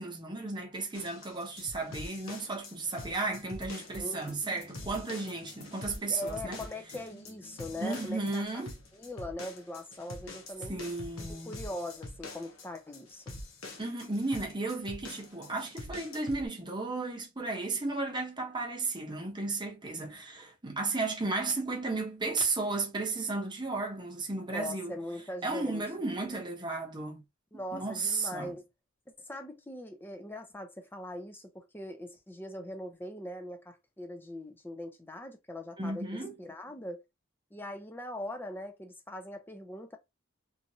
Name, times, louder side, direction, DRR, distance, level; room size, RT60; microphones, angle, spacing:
voice 1, 0.0-6.6 7.8-8.7 10.7-11.5 13.8-24.9 25.4-27.2 27.7-28.5 35.8-36.3, right 3 dB, 20° right, 0.8 m, -34 dB
sound 1, 0.9-16.5, left 2 dB, 80° left, 0.9 m, -45 dB
sound 2, 3.3-8.4, equal, 55° left, 1.1 m, -50 dB
voice 2, 4.0-4.4 6.1-8.4 8.9-10.8 11.2-13.3 24.5-25.8 26.1-26.4 27.5-28.7 29.2-37.0 37.5-40.0, left 1 dB, 10° left, 0.5 m, -41 dB
3.0 x 2.5 x 2.6 m
head